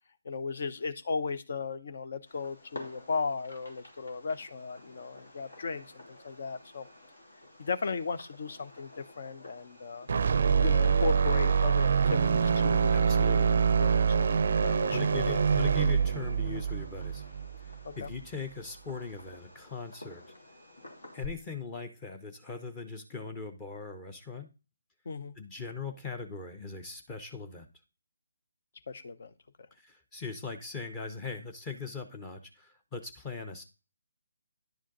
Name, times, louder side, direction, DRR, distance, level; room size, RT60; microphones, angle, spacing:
voice 1, 0.2-6.9 7.6-10.1 10.6-13.1 13.5-14.3 14.6-15.0 15.3-15.4 17.8-18.1 25.0-25.3 28.9-29.3, left 4 dB, 50° left, 0.8 m, -36 dB
Fireworks, 2.3-21.3, left 2 dB, 70° left, 3.0 m, -51 dB
sound 1, 10.1-18.2, right 6 dB, 50° right, 0.5 m, -25 dB
voice 2, 12.9-13.5 14.9-17.2 18.0-20.2 21.1-24.5 25.4-27.7 29.7-33.6, left 5 dB, 15° left, 0.9 m, -40 dB
10.5 x 5.0 x 3.9 m
figure-of-eight pair, 145°, 0 cm